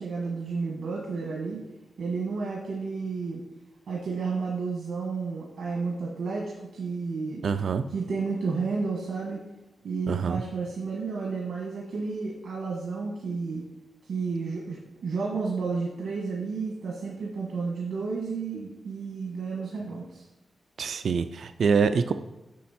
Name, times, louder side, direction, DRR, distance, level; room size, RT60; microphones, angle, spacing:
voice 1, 0.0-1.6 2.0-3.4 3.9-7.4 7.9-9.4 9.8-13.6 14.1-20.2, right 4 dB, 85° right, -2 dB, 1.3 m, -31 dB
voice 2, 7.4-7.8 10.1-10.4 20.8-22.1, right 5 dB, 60° right, 11 dB, 0.3 m, -25 dB
8.5 x 5.6 x 4.2 m, 1.0 s
wide cardioid pair, 175°, 0 cm